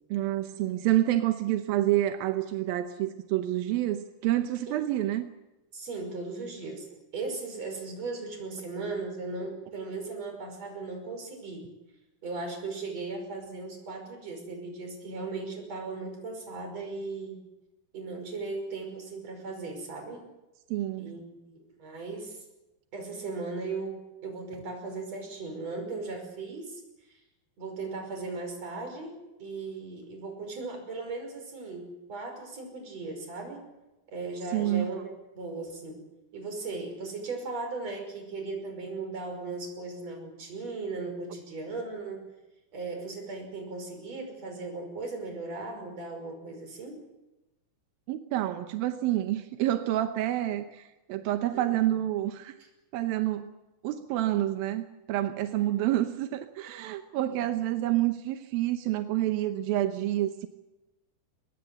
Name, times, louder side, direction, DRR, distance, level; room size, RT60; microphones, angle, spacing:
voice 1, 0.1-5.3 20.7-21.2 34.5-34.9 48.1-52.5 52.9-53.5 53.8-60.5, right 14 dB, 75° right, 8 dB, 2.2 m, -28 dB
voice 2, 5.7-6.9 7.1-11.7 12.2-17.4 17.9-20.3 21.0-22.4 22.9-27.2 27.6-33.6 34.1-36.0 36.3-42.3 42.7-47.0 51.5-51.6 57.3-57.4, right 3 dB, 35° right, 4 dB, 6.5 m, -37 dB
23.0 x 21.0 x 7.9 m, 1.0 s
omnidirectional pair, 5.2 m